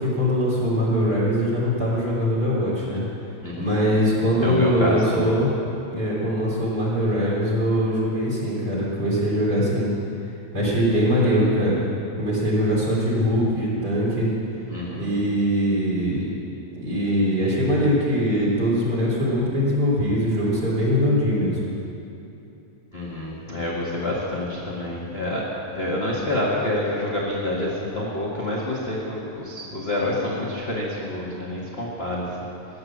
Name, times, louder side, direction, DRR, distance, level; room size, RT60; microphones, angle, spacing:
voice 1, 0.0-3.1 3.6-5.5 5.9-9.9 10.5-11.8 12.2-14.3 15.0-16.2 16.7-21.6, equal, 25° right, -6 dB, 4.1 m, -22 dB
voice 2, 3.4-3.7 4.4-5.4 14.7-15.1 22.9-25.5 25.7-32.5, left 1 dB, 30° left, -5 dB, 1.1 m, -27 dB
16.0 x 10.0 x 7.4 m, 2.9 s
omnidirectional pair, 4.0 m